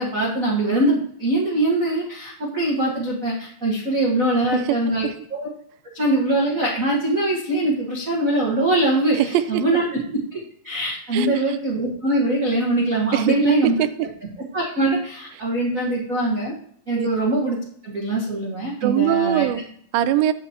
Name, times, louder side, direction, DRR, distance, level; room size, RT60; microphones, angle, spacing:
voice 1, 0.0-5.5 5.9-9.8 10.3-10.4 10.6-13.7 14.5-16.5 16.9-17.6 17.8-19.5, right 1 dB, 60° right, -3 dB, 0.8 m, -22 dB
voice 2, 9.1-9.6 11.1-11.4 13.1-13.5 13.8-13.9 17.0-17.1 18.8-20.3, right 12 dB, 90° right, 13 dB, 2.4 m, -21 dB
8.1 x 7.9 x 2.8 m, 0.63 s
omnidirectional pair, 4.1 m